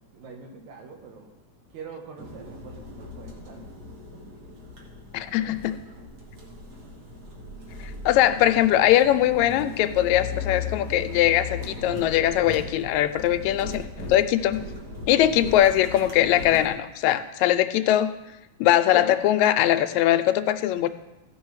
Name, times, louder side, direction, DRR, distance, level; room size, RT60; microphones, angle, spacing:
voice 1, 0.1-1.3 1.7-3.7 8.4-8.8 15.3-15.6, right 5 dB, 75° right, 2 dB, 2.7 m, -44 dB
sound 1, 2.2-16.7, left 3 dB, 40° right, 1.7 m, -38 dB
voice 2, 5.1-5.8 8.1-13.8 14.1-14.6 15.1-18.1 18.6-20.9, left 12 dB, 80° left, 9 dB, 1.9 m, -21 dB
15.5 x 5.4 x 4.7 m, 0.98 s
omnidirectional pair, 3.4 m